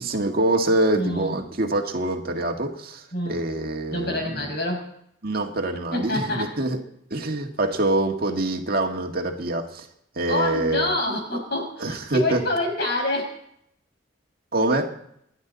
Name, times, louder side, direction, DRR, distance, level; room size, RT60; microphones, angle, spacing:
voice 1, 0.0-4.5 5.2-6.8 7.1-9.9 10.2-10.9 11.8-12.4 14.5-14.9, right 2 dB, 50° right, 3 dB, 2.0 m, -25 dB
voice 2, 0.9-1.4 3.1-3.4 3.9-4.9 5.9-6.5 10.3-13.3, left 1 dB, 60° left, 2 dB, 6.0 m, -26 dB
29.0 x 11.0 x 4.1 m, 0.73 s
head